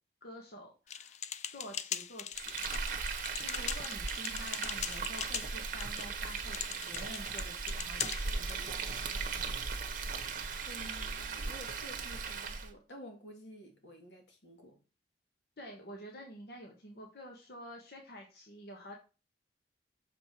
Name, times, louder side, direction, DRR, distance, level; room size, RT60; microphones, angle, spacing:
voice 1, 0.2-1.2 1.5-2.8 3.4-9.2 15.6-18.9, equal, 60° left, 1.5 m, -49 dB
sound 1, 0.9-8.6, left 9 dB, 40° left, 0.4 m, -41 dB
Frying (food), 2.3-12.7, right 5 dB, 50° right, 1.0 m, -38 dB
voice 2, 10.7-14.8, equal, 85° left, 2.0 m, -51 dB
6.8 x 4.8 x 4.6 m
head